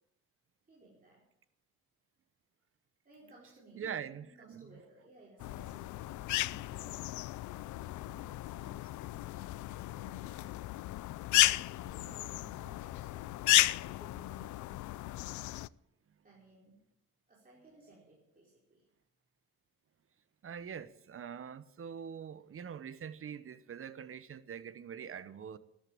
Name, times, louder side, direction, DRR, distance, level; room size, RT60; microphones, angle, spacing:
voice 1, 0.7-1.3 3.0-7.0 7.5-10.8 11.2-14.9 16.2-16.8 17.3-18.8, right 2 dB, 30° right, 5.1 m, -60 dB
voice 2, 3.8-4.8 20.4-25.6, right 8 dB, 45° right, 1.1 m, -44 dB
sound 1, 5.4-15.7, left 17 dB, 75° left, 0.5 m, -33 dB
13.5 x 11.5 x 8.8 m
cardioid pair, 90°, 30 cm